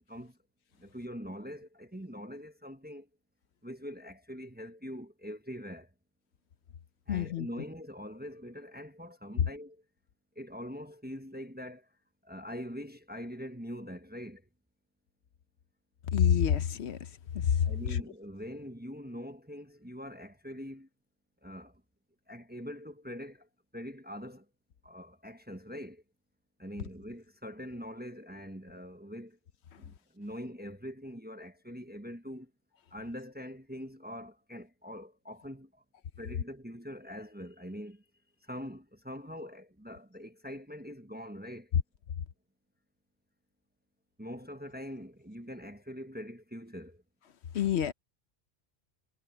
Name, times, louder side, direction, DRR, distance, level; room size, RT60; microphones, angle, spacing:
voice 1, 0.8-3.1 3.6-5.9 7.1-9.8 10.4-11.9 12.2-14.4 17.6-20.9 21.4-21.8 22.3-23.5 23.7-24.5 24.8-26.0 26.6-29.4 29.8-32.5 32.9-35.8 36.2-38.0 38.4-41.7 44.2-47.0, equal, 10° right, 1.0 m, -43 dB
voice 2, 7.1-7.5 16.1-17.0 17.3-18.0 47.5-47.9, left 9 dB, 75° left, 1.0 m, -27 dB
omnidirectional pair, 1.2 m